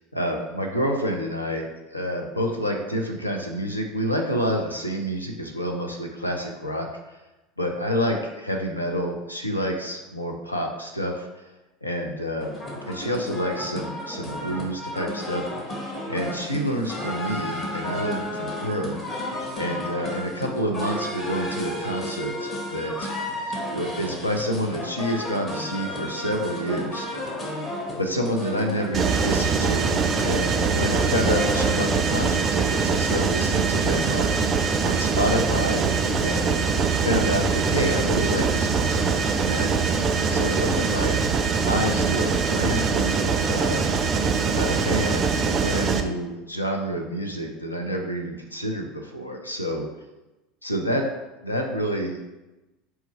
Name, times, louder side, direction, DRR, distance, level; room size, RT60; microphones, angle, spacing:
voice 1, 0.1-7.2 7.6-11.3 11.8-12.5 12.8-15.7 16.1-19.0 19.5-23.1 23.7-27.1 28.0-29.9 30.2-34.4 34.9-35.9 36.2-36.6 37.0-39.1 39.5-39.9 40.3-41.2 41.6-43.9 44.5-49.9 50.6-51.0 51.4-52.2, equal, 85° left, 2 dB, 0.5 m, -28 dB
sound 1, 12.4-32.3, left 1 dB, 30° left, 1.0 m, -33 dB
Mechanisms, 28.9-46.0, right 5 dB, 35° right, 0.4 m, -23 dB
4.4 x 2.4 x 4.1 m, 1.0 s
figure-of-eight pair, 75°, 0 cm